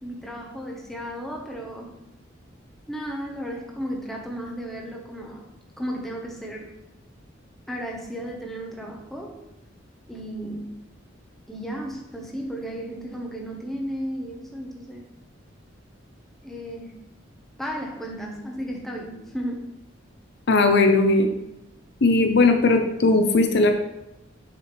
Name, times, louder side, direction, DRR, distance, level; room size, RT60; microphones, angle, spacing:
voice 1, 0.0-1.9 2.9-5.4 5.8-6.7 7.7-9.3 10.1-10.8 11.5-15.0 16.4-17.0 17.6-19.6, equal, ahead, -1 dB, 1.1 m, -34 dB
voice 2, 20.5-21.3 22.0-23.7, left 3 dB, 60° left, 6 dB, 0.6 m, -18 dB
7.6 x 4.9 x 3.3 m, 0.91 s
head